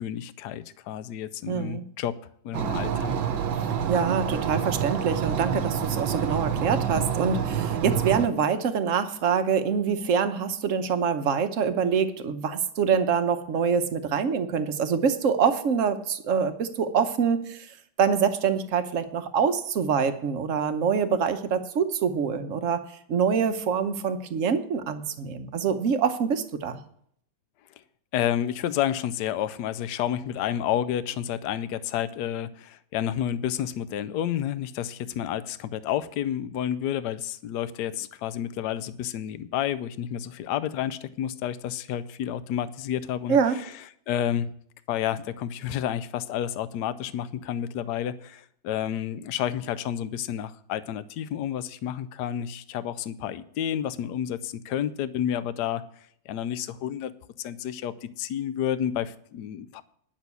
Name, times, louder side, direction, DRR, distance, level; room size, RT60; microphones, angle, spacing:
voice 1, 0.0-2.2 2.4-3.1 28.1-43.7 44.1-44.5 44.9-55.9 56.3-59.8, left 10 dB, 70° left, 14 dB, 1.0 m, -30 dB
voice 2, 1.5-1.8 3.5-17.7 18.0-22.8 23.1-26.8 43.3-43.6, right 6 dB, 55° right, 9 dB, 0.9 m, -25 dB
sound 1, 2.5-8.3, right 8 dB, 75° right, 1.6 m, -27 dB
10.5 x 6.3 x 8.2 m, 0.65 s
omnidirectional pair, 2.2 m